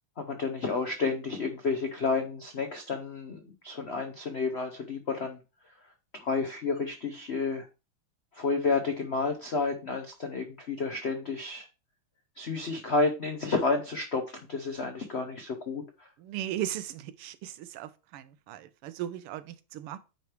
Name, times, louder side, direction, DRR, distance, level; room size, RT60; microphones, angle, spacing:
voice 1, 0.2-5.4 6.2-7.7 8.3-11.7 12.4-16.1, left 4 dB, 70° left, 0.6 m, -31 dB
voice 2, 16.2-20.0, right 12 dB, 85° right, 1.6 m, -37 dB
9.5 x 3.3 x 4.5 m
omnidirectional pair, 2.4 m